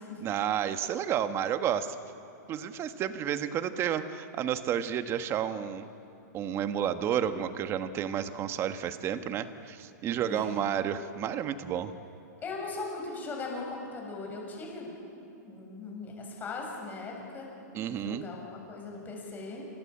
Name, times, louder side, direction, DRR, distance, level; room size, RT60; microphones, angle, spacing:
voice 1, 0.2-2.0 2.5-5.9 6.3-11.9 17.7-18.2, right 9 dB, 25° right, 9 dB, 1.4 m, -31 dB
voice 2, 12.4-14.9 15.4-19.6, left 3 dB, 20° left, -1 dB, 7.6 m, -39 dB
28.0 x 25.0 x 8.5 m, 2.9 s
hypercardioid pair, 145°, 10 cm